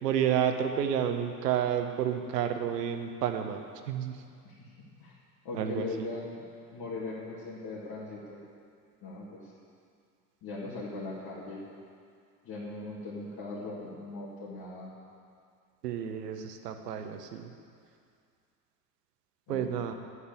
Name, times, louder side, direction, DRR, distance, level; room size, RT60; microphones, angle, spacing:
voice 1, 0.0-4.2 5.5-6.1 15.8-17.5 19.5-19.9, right 9 dB, 75° right, 6 dB, 1.3 m, -30 dB
voice 2, 4.4-5.2 5.4-6.4 6.7-8.4 9.0-9.5 10.4-11.6 12.4-14.9 19.5-19.7, left 2 dB, 50° left, -8 dB, 3.1 m, -39 dB
13.0 x 10.0 x 7.2 m, 2.3 s
figure-of-eight pair, 65°, 48 cm